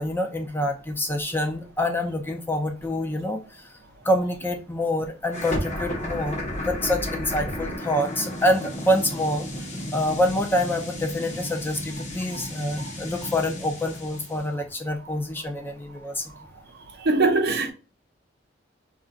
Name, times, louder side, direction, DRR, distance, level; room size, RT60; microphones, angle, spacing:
voice 1, 0.0-3.8 4.0-16.3, left 1 dB, 10° left, 0.4 m, -26 dB
sound 1, 5.3-14.4, left 1 dB, 40° left, 0.8 m, -33 dB
voice 2, 17.0-17.7, right 3 dB, 60° right, 0.6 m, -21 dB
2.4 x 2.2 x 3.8 m
head